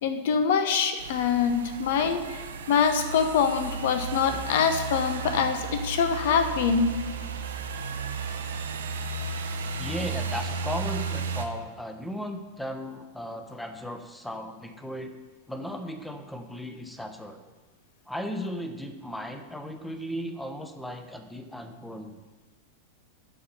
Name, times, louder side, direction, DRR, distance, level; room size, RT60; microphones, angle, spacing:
voice 1, 0.0-2.4 2.7-6.9, left 6 dB, 55° left, 8 dB, 1.1 m, -24 dB
sound 1, 1.0-11.5, right 4 dB, 65° right, 0.9 m, -34 dB
voice 2, 9.8-15.1 15.5-17.4 18.1-22.2, equal, 5° left, 7 dB, 1.0 m, -36 dB
12.5 x 5.1 x 5.7 m, 1.3 s
figure-of-eight pair, 90°, 0 cm